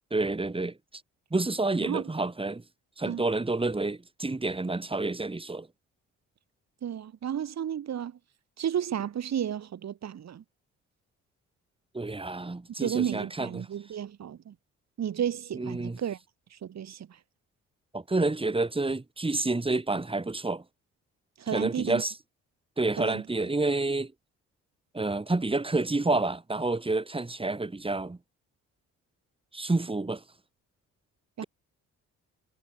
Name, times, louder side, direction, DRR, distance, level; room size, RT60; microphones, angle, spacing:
voice 1, 0.1-0.8 1.3-2.6 3.0-5.7 11.9-13.7 15.5-16.0 17.9-20.6 21.5-22.1 22.8-24.1 24.9-28.2 29.5-30.2, right 2 dB, 20° right, 6.8 m, -29 dB
voice 2, 1.8-2.1 3.1-3.2 6.8-8.1 8.6-10.4 12.8-14.5 15.0-16.2 16.5-17.2 21.4-22.0 23.0-23.2 31.4-31.5, right 9 dB, 60° right, 5.9 m, -32 dB
cardioid pair, 90°, 30 cm